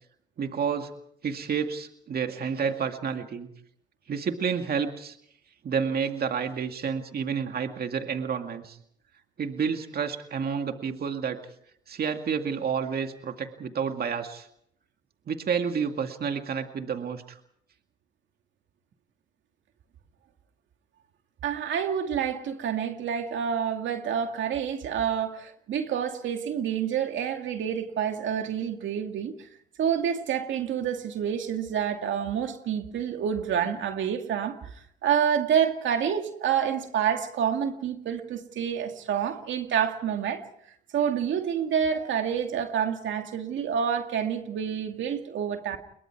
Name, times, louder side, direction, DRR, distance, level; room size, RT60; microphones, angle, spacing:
voice 1, 0.4-0.9 1.2-3.5 4.1-5.2 5.6-8.8 9.4-11.4 11.9-14.5 15.3-17.4, right 6 dB, 50° right, 5 dB, 2.1 m, -30 dB
voice 2, 21.4-29.4 29.8-34.7 35.0-40.4 40.9-45.8, right 8 dB, 70° right, 5 dB, 2.3 m, -28 dB
29.0 x 22.5 x 4.7 m, 0.70 s
cardioid pair, 90°, 20 cm